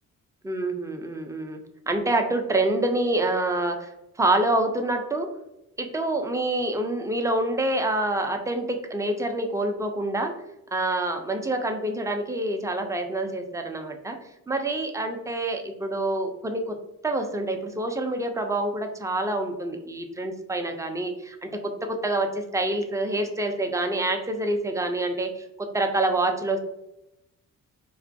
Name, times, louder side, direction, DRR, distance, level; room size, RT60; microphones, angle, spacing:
voice 1, 0.4-1.6 1.9-5.3 5.8-10.3 10.7-14.2 14.5-16.8 17.0-26.6, right 2 dB, 10° right, 5 dB, 0.3 m, -27 dB
2.4 x 2.2 x 2.5 m, 0.88 s
cardioid pair, 70°, 34 cm